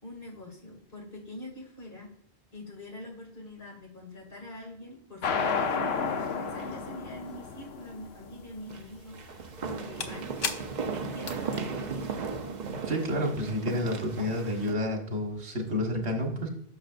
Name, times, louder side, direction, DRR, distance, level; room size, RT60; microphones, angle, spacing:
voice 1, 0.0-2.1 2.5-10.6 10.9-12.5, left 1 dB, 60° left, -2 dB, 2.8 m, -44 dB
sound 1, 5.2-12.8, left 6 dB, 75° left, 1.0 m, -32 dB
sound 2, 5.4-6.9 7.2-7.3 8.7-14.7, right 5 dB, 50° right, 0.7 m, -37 dB
voice 2, 12.8-16.5, left 1 dB, 90° right, 1 dB, 1.9 m, -30 dB
10.5 x 6.4 x 2.5 m, 0.70 s
omnidirectional pair, 1.1 m